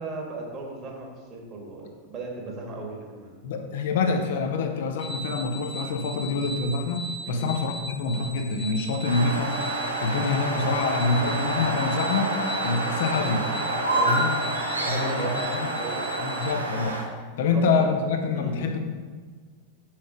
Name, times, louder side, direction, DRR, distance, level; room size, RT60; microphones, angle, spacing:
voice 1, 0.0-3.4 7.3-7.5 13.9-14.2 14.8-16.2 17.5-17.9 18.3-18.6, right 3 dB, 30° right, -1 dB, 1.9 m, -36 dB
voice 2, 3.4-9.5 10.0-12.3 12.6-13.5 14.1-14.3 14.9-15.7 16.2-17.0 17.4-18.8, left 4 dB, 55° left, 5 dB, 0.7 m, -26 dB
sound 1, 5.0-16.5, equal, 5° left, 0.5 m, -38 dB
sound 2, 9.0-17.0, right 2 dB, 80° right, 1.1 m, -28 dB
6.3 x 5.7 x 4.6 m, 1.5 s
figure-of-eight pair, 90°, 0 cm